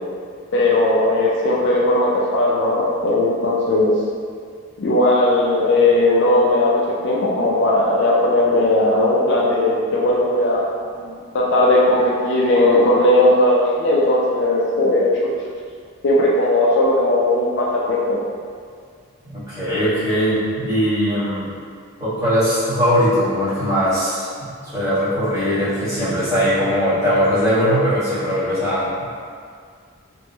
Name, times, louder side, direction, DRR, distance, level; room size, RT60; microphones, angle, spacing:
voice 1, 0.5-4.0 4.8-10.6 11.3-15.3 16.0-18.2, left 1 dB, 55° left, -4 dB, 0.3 m, -17 dB
voice 2, 19.2-21.5 22.0-29.0, equal, 15° right, -16 dB, 1.5 m, -20 dB
2.9 x 2.9 x 2.2 m, 2.1 s
head